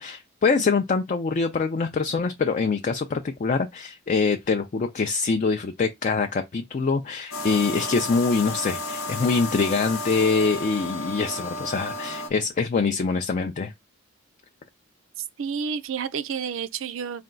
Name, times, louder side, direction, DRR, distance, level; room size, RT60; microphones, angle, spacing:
voice 1, 0.0-13.7, left 4 dB, 35° left, 0.3 m, -24 dB
sound 1, 7.3-12.3, left 2 dB, 80° left, 0.8 m, -32 dB
voice 2, 15.2-17.2, right 6 dB, 65° right, 0.4 m, -30 dB
4.2 x 2.2 x 3.8 m
head